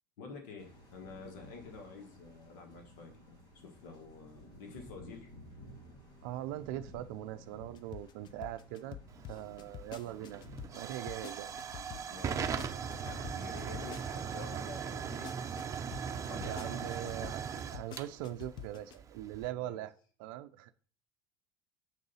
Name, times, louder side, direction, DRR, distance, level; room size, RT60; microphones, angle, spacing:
voice 1, 0.2-5.3 11.9-16.8 19.6-19.8, left 4 dB, 80° left, 4 dB, 1.4 m, -50 dB
sound 1, 0.6-12.0, equal, 60° left, 4.0 m, -55 dB
voice 2, 6.2-9.0 9.3-11.5 16.4-17.5 17.7-19.9 20.2-20.7, right 13 dB, 75° right, 11 dB, 0.5 m, -41 dB
sound 2, 7.7-14.5 14.9-19.0, left 11 dB, 40° left, 0.5 m, -47 dB
Hiss / Fire / Tick, 9.1-19.5, right 7 dB, 30° right, 0.7 m, -39 dB
7.4 x 3.9 x 5.5 m, 0.42 s
supercardioid pair, 110°, 12 cm